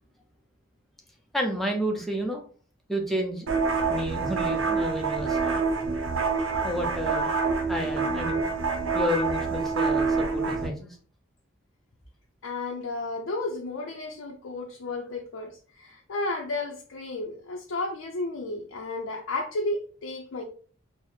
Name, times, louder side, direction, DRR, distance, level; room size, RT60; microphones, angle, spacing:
voice 1, 1.3-2.4 2.9-3.5 3.9-5.6 6.6-7.3 7.7-8.4 8.9-10.9, equal, ahead, 0 dB, 0.5 m, -30 dB
sound 1, 3.5-10.7, right 4 dB, 80° right, 0.7 m, -26 dB
voice 2, 12.4-20.4, left 2 dB, 80° left, 1 dB, 0.5 m, -33 dB
4.0 x 2.0 x 3.2 m, 0.43 s
head